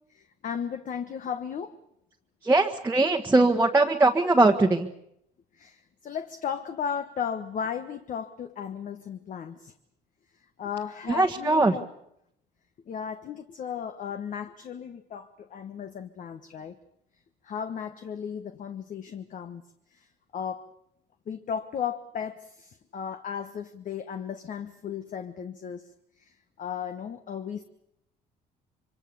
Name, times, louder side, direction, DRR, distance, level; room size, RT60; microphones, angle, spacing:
voice 1, 0.1-1.8 5.5-9.7 10.6-11.9 12.9-16.8 17.4-19.6 19.9-20.1 20.3-20.7 21.3-25.9 26.2-27.6, left 7 dB, 50° left, 8 dB, 1.3 m, -35 dB
voice 2, 2.4-4.9 11.1-11.7, right 2 dB, 15° right, 2 dB, 1.4 m, -21 dB
26.5 x 24.5 x 7.0 m, 0.77 s
cardioid pair, 110°, 17 cm